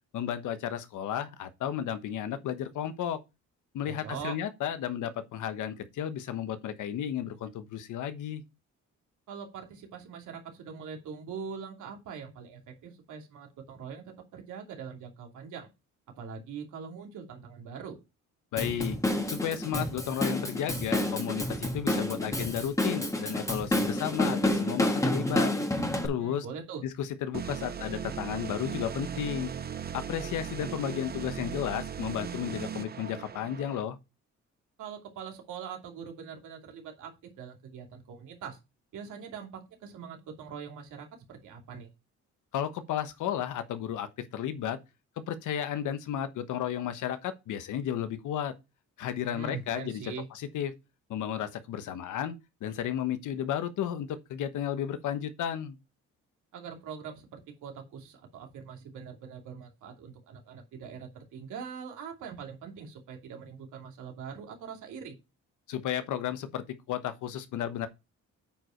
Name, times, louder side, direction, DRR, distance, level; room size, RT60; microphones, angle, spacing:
voice 1, 0.1-3.2 3.7-8.4 18.5-19.0 19.3-25.5 26.0-26.4 27.0-29.5 29.9-34.0 42.5-44.8 45.2-48.5 49.0-50.7 51.1-55.8 65.7-67.9, left 10 dB, 80° left, 1.2 m, -33 dB
voice 2, 3.9-4.4 9.3-15.7 16.2-18.0 26.2-26.8 34.8-38.6 38.9-41.9 49.3-50.3 56.5-65.2, right 6 dB, 80° right, 2.7 m, -42 dB
Drum kit / Drum, 18.6-26.1, left 1 dB, 10° left, 1.7 m, -29 dB
sound 1, 27.3-33.8, right 7 dB, 30° right, 0.6 m, -38 dB
8.8 x 5.2 x 4.5 m
cardioid pair, 90°, 30 cm